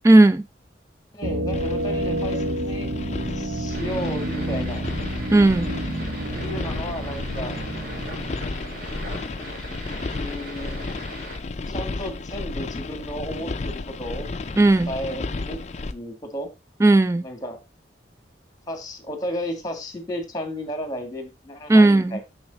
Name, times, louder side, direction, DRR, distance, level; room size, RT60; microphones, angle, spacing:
voice 1, 0.0-0.4 5.3-5.7 14.6-14.9 16.8-17.2 21.7-22.2, right 2 dB, 15° right, 0.4 m, -15 dB
voice 2, 1.1-2.9 3.4-4.8 6.4-7.6 9.4-9.6 10.1-11.0 11.7-14.2 14.9-15.6 15.9-16.5 17.2-17.6 18.7-22.2, equal, 20° left, 1.8 m, -33 dB
sound 1, 1.2-9.9, right 1 dB, 70° right, 1.0 m, -30 dB
sound 2, 1.5-15.9, left 3 dB, 40° left, 0.5 m, -33 dB
sound 3, 3.7-11.4, right 1 dB, 50° right, 2.0 m, -40 dB
6.4 x 6.4 x 3.9 m
head